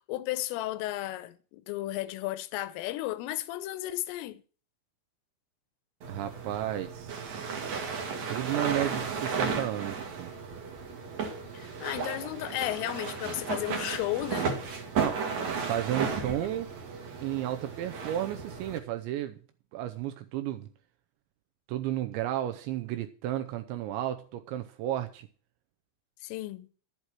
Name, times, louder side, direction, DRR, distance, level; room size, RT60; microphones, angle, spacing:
voice 1, 0.1-4.4 11.5-14.5 26.2-26.7, left 16 dB, 80° left, 3.3 m, -34 dB
sound 1, 6.0-18.8, right 5 dB, 50° right, 2.5 m, -34 dB
voice 2, 6.1-10.3 15.0-15.2 15.7-16.7 17.2-19.4 19.7-20.7 21.7-25.3, right 12 dB, 80° right, 2.7 m, -33 dB
11.5 x 9.0 x 6.2 m
omnidirectional pair, 5.9 m